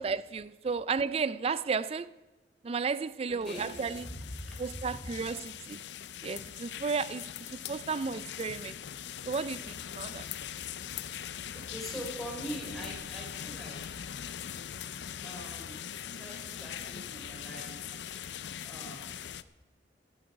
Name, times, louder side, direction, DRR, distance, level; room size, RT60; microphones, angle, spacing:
voice 1, 0.0-2.1 2.6-4.1 4.6-5.8 6.2-7.3 7.7-8.8 9.2-10.3, right 5 dB, 35° right, 0.3 m, -33 dB
voice 2, 3.3-5.3 11.2-13.9 15.2-18.0 18.6-19.3, equal, ahead, 4.1 m, -43 dB
sound 1, 3.4-19.4, left 9 dB, 75° left, 0.5 m, -41 dB
14.5 x 12.0 x 5.2 m
head